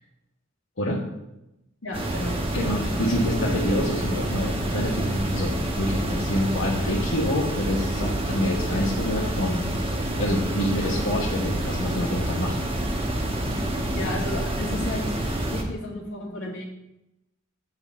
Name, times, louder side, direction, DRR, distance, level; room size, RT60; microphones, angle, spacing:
voice 1, 1.8-2.4 2.9-3.0 10.2-10.3 13.9-15.1 15.3-16.7, left 1 dB, 85° left, -2 dB, 2.4 m, -33 dB
sound 1, 1.9-15.6, right 1 dB, 30° right, 1.2 m, -27 dB
voice 2, 2.5-12.6, left 1 dB, 70° left, -7 dB, 1.5 m, -27 dB
8.2 x 4.1 x 6.9 m, 0.89 s
head